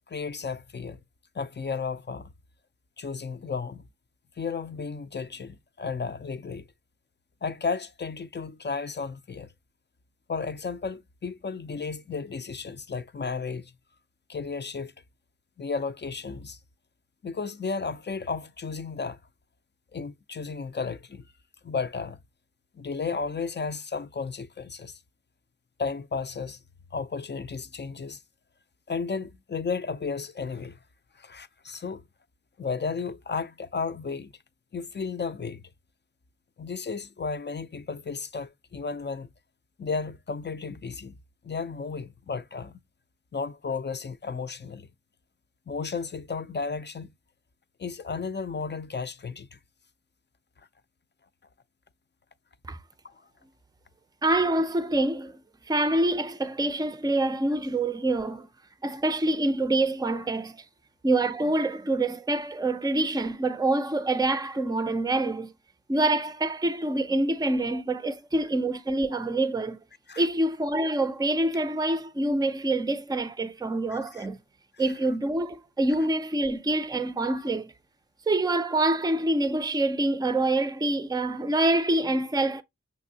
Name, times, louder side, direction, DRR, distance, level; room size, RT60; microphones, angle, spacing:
voice 1, 0.1-1.0 1.3-2.3 3.0-3.8 4.4-6.7 7.4-9.5 10.3-13.7 14.3-14.9 15.6-16.6 17.2-19.2 19.9-21.3 21.6-22.2 22.7-25.0 25.8-26.6 26.9-28.2 28.9-30.8 31.2-32.0 32.6-34.3 34.7-35.6 36.6-39.3 39.8-41.2 41.4-42.8 43.3-44.9 45.7-47.1 47.8-49.6 53.0-53.1 70.1-70.3 73.9-74.3, left 5 dB, 35° left, 0.5 m, -33 dB
voice 2, 54.2-55.4 55.7-58.5 58.8-60.6 61.0-65.5 65.9-69.8 70.2-74.4 74.8-77.7 78.3-82.6, right 2 dB, 15° right, 0.5 m, -26 dB
6.0 x 2.6 x 2.8 m
cardioid pair, 40°, 30 cm